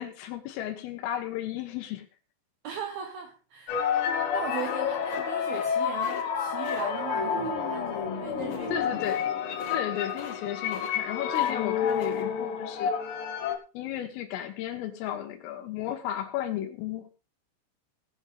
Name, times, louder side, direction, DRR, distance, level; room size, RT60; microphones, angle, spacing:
voice 1, 0.0-2.1 8.7-9.3 9.7-12.9 13.8-17.1, left 11 dB, 85° left, 6 dB, 4.0 m, -34 dB
voice 2, 2.6-9.0, right 7 dB, 80° right, 5 dB, 2.2 m, -39 dB
sound 1, 3.7-13.6, left 7 dB, 70° left, 3.4 m, -29 dB
sound 2, 4.5-5.7 6.0-6.2 6.6-6.9 8.4-8.7 9.0-9.3 9.5-9.8 10.1-10.4 10.7-11.5 11.9-12.2, left 6 dB, 55° left, 2.9 m, -44 dB
19.0 x 8.0 x 3.5 m, 0.31 s
omnidirectional pair, 5.7 m